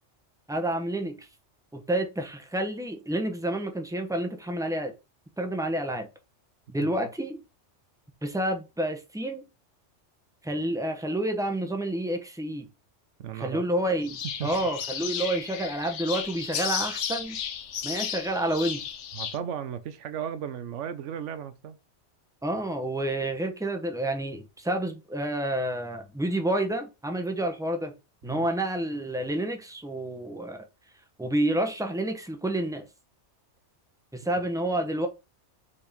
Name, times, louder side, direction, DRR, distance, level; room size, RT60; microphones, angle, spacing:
voice 1, 0.5-1.3 1.7-4.9 5.4-6.1 6.7-7.4 8.2-9.5 10.4-12.7 13.4-17.4 17.8-18.8 22.4-27.9 28.2-30.6 31.2-32.9 34.1-35.1, right 1 dB, 5° right, 1.1 m, -29 dB
voice 2, 13.2-13.6 14.4-14.7 19.1-21.8 28.2-28.5, right 9 dB, 80° right, 1.1 m, -35 dB
sound 1, 14.0-19.4, left 8 dB, 75° left, 1.2 m, -34 dB
5.1 x 4.6 x 5.2 m
omnidirectional pair, 1.2 m